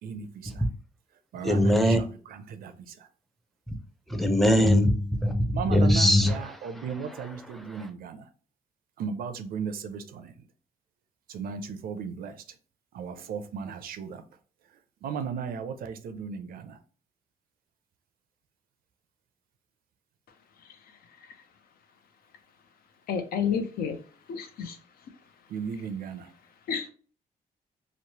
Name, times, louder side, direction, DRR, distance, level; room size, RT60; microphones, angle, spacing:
voice 1, 0.0-0.6 1.3-3.1 5.5-8.3 9.0-10.3 11.3-12.4 12.9-14.2 15.0-16.8 25.5-26.3, right 6 dB, 80° right, 0.5 m, -36 dB
voice 2, 1.4-2.0 4.1-6.6, left 1 dB, ahead, 0.5 m, -21 dB
voice 3, 23.1-24.0 24.3-24.8 26.7-26.9, left 7 dB, 80° left, 0.6 m, -30 dB
3.1 x 2.0 x 2.8 m
cardioid pair, 115°, 15 cm